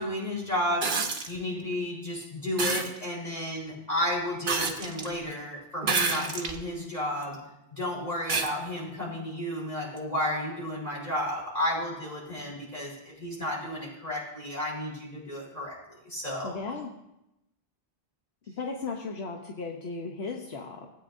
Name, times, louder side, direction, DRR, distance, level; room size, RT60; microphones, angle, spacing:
voice 1, 0.0-7.4 7.7-15.8 16.0-16.6, left 1 dB, 40° left, -5 dB, 4.0 m, -32 dB
sound 1, 0.8-1.3 2.6-2.9 4.5-5.1 5.8-6.6 7.2-7.3 8.3-8.5 10.0-10.1, right 4 dB, 50° right, 1.0 m, -28 dB
voice 2, 16.4-16.9 18.5-20.9, left 4 dB, 80° left, 2 dB, 1.1 m, -36 dB
17.0 x 8.7 x 2.6 m, 0.89 s
omnidirectional pair, 1.1 m